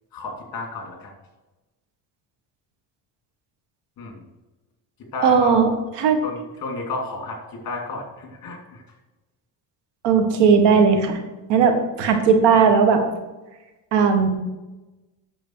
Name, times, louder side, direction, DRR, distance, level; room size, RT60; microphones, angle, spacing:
voice 1, 0.1-1.1 4.0-4.2 5.1-5.6 6.2-8.8, left 3 dB, 55° left, 1 dB, 3.0 m, -32 dB
voice 2, 5.2-5.7 6.0-6.2 10.0-11.2 11.5-13.0 13.9-14.3, right 6 dB, 85° right, 5 dB, 1.8 m, -17 dB
9.0 x 7.2 x 4.8 m, 1.1 s
cardioid pair, 125°, 41 cm